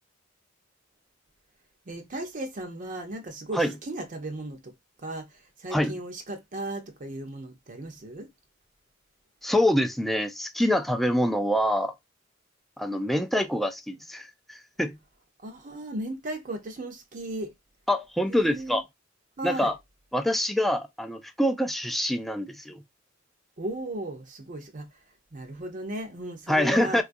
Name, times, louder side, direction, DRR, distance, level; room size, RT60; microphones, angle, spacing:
voice 1, 1.9-4.7 5.0-8.3 15.4-17.5 18.3-18.8 19.4-19.7 23.6-24.9 25.3-27.0, right 1 dB, 40° right, 0.6 m, -36 dB
voice 2, 9.4-11.9 12.8-15.0 17.9-18.8 19.4-19.8 20.1-22.8 26.5-27.0, left 1 dB, ahead, 0.3 m, -25 dB
3.7 x 2.4 x 2.5 m
head